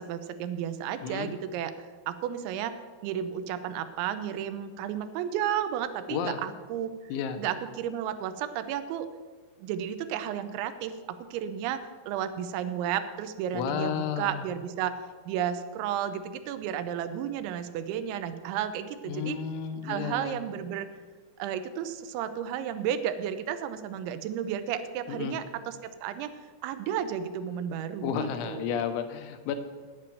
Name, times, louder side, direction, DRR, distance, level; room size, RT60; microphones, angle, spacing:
voice 1, 0.0-2.8 3.0-7.1 7.4-9.1 9.6-15.0 15.3-19.4 19.8-20.9 21.4-26.3 26.6-28.8, right 9 dB, 85° right, 11 dB, 3.0 m, -33 dB
voice 2, 7.1-7.4 13.5-14.4 19.0-20.4 25.1-25.4 28.0-29.6, left 7 dB, 90° left, 7 dB, 3.3 m, -32 dB
9.3 x 8.9 x 7.5 m, 1.5 s
omnidirectional pair, 5.2 m